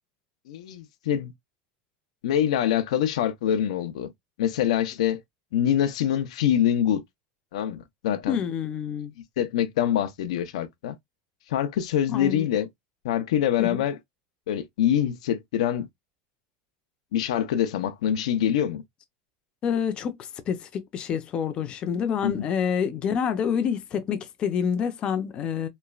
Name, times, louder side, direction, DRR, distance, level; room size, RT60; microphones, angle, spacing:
voice 1, 0.5-1.3 2.2-4.1 4.4-5.2 5.5-7.0 7.5-8.4 9.4-11.0 11.5-12.7 13.0-14.0 14.5-15.9 17.1-18.8 22.2-22.5, left 10 dB, 85° left, 0.5 m, -25 dB
voice 2, 8.3-9.1 12.1-12.5 13.6-13.8 19.6-25.7, left 7 dB, 30° left, 0.5 m, -27 dB
3.0 x 2.2 x 2.3 m
supercardioid pair, 145°, 3 cm